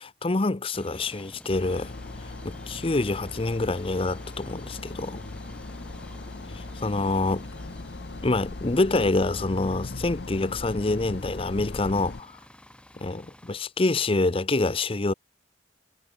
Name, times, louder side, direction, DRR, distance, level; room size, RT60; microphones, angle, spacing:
voice 1, 0.0-1.9 2.2-5.2 6.5-7.4 8.2-12.4 13.0-15.1, left 2 dB, 30° left, 0.7 m, -26 dB
sound 1, 0.7-13.5, left 1 dB, 5° left, 5.9 m, -50 dB
sound 2, 1.5-12.2, left 2 dB, 60° left, 0.9 m, -39 dB
head